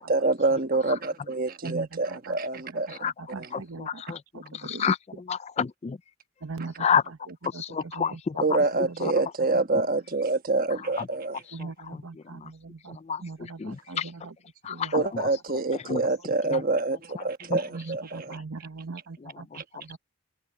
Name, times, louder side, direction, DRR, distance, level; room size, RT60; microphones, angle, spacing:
voice 1, 0.0-3.1 3.4-3.5 8.4-11.4 14.9-18.4 19.5-19.6, right 3 dB, 40° right, 1.3 m, -26 dB
voice 2, 1.6-2.4 2.7-4.9 6.4-8.4 8.9-9.1 11.5-14.3 14.7-14.9 17.7-20.0, right 3 dB, 75° right, 1.0 m, -41 dB
voice 3, 3.5-4.2 4.6-5.0 5.3-6.0 6.8-7.0 7.6-8.3 13.1-13.2 13.6-14.1 14.7-15.3 15.9-16.0 17.5-17.6, left 7 dB, 30° left, 0.3 m, -28 dB
head